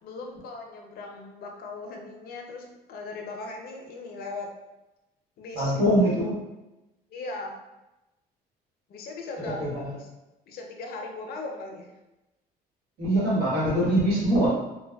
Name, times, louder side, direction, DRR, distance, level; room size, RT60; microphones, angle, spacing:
voice 1, 0.0-4.5 5.4-5.8 7.1-7.5 8.9-9.6 9.9-10.1 10.5-11.9, left 3 dB, 65° left, 2 dB, 0.5 m, -38 dB
voice 2, 5.5-6.4 9.4-9.9 13.0-14.5, right 1 dB, 75° right, -7 dB, 1.4 m, -23 dB
3.1 x 2.1 x 2.2 m, 0.99 s
cardioid pair, 110°, 17 cm